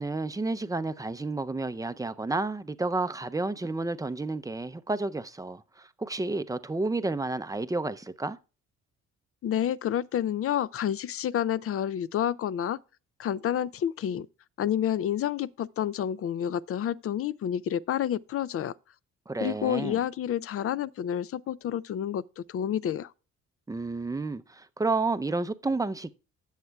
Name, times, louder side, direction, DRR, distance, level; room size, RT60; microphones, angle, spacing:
voice 1, 0.0-8.4 19.3-20.0 23.7-26.1, right 3 dB, 10° right, 0.5 m, -31 dB
voice 2, 9.4-12.8 13.2-14.3 14.6-18.7 19.4-23.1, left 10 dB, 50° left, 0.4 m, -29 dB
18.5 x 7.3 x 2.3 m
cardioid pair, 90°, 30 cm